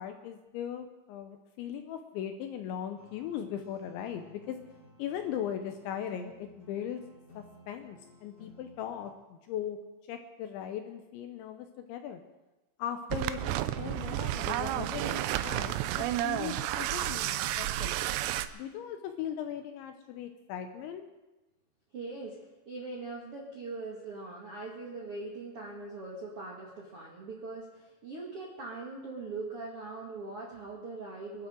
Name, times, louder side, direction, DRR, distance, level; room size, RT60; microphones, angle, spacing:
voice 1, 0.0-4.6 5.0-7.0 7.4-9.8 10.1-12.2 12.8-18.0 18.5-21.0, left 9 dB, 80° left, 6 dB, 2.7 m, -39 dB
sound 1, 3.0-9.1, left 1 dB, 15° left, 4.1 m, -57 dB
sound 2, 13.1-18.5, right 13 dB, 85° right, 2.9 m, -31 dB
voice 2, 21.9-22.4 22.6-31.5, right 3 dB, 65° right, -3 dB, 1.4 m, -41 dB
24.5 x 12.5 x 3.8 m, 1.1 s
omnidirectional pair, 6.0 m